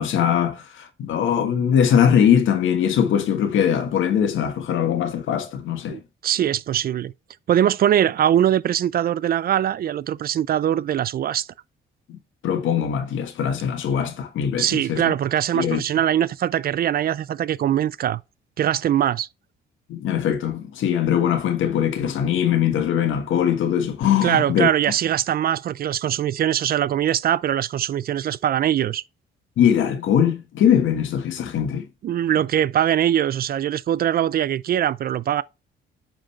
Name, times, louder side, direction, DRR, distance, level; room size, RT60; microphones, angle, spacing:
voice 1, 0.0-6.0 12.1-12.2 12.4-15.1 15.5-15.8 19.9-24.7 29.6-31.8, left 9 dB, 80° left, 1.5 m, -21 dB
voice 2, 5.9-7.1 7.5-11.5 14.6-18.2 18.6-19.3 24.2-29.0 32.0-35.4, right 10 dB, 50° right, 0.4 m, -22 dB
8.9 x 4.0 x 4.3 m
cardioid pair, 90°, 20 cm